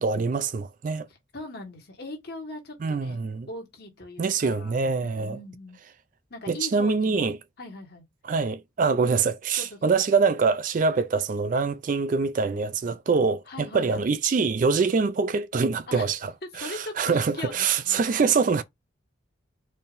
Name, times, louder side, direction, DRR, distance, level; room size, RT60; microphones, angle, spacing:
voice 1, 0.0-1.1 2.8-3.5 4.2-5.4 6.5-7.4 8.3-16.3 16.6-18.6, right 4 dB, 40° right, 0.3 m, -24 dB
voice 2, 1.1-5.8 6.3-8.0 9.6-9.9 13.5-14.0 15.9-16.2 16.5-18.1, left 2 dB, 55° left, 1.5 m, -40 dB
4.3 x 3.5 x 2.5 m
head